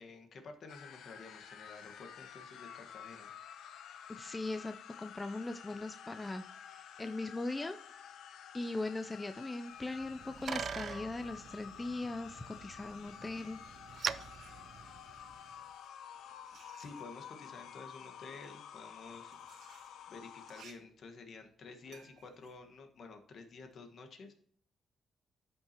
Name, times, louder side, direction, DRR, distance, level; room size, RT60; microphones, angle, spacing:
voice 1, 0.0-3.3 16.8-19.4 20.1-24.3, left 4 dB, 55° left, 5 dB, 1.4 m, -51 dB
sound 1, 0.7-20.6, left 8 dB, 80° left, 0.7 m, -51 dB
voice 2, 4.1-7.8 8.5-13.6, left 2 dB, 15° left, 8 dB, 0.4 m, -40 dB
Bicycle, 9.8-15.5, right 7 dB, 50° right, 0.4 m, -43 dB
sound 2, 13.2-15.1 15.8-23.7, right 6 dB, 70° right, 2.0 m, -62 dB
13.0 x 5.7 x 2.9 m, 0.62 s
cardioid pair, 130°, 0 cm